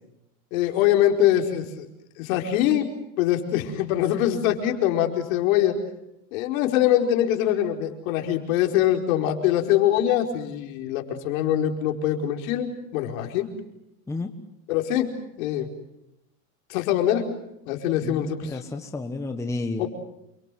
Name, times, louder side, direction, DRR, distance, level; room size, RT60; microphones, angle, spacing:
voice 1, 0.5-1.9 2.2-2.9 3.2-5.7 6.3-13.5 14.7-15.7 16.7-17.3 17.7-18.6 19.8-19.9, left 11 dB, 60° left, 3 dB, 5.1 m, -23 dB
voice 2, 18.0-19.9, left 3 dB, 5° left, 5 dB, 1.3 m, -31 dB
28.5 x 24.0 x 7.8 m, 0.84 s
supercardioid pair, 155°, 47 cm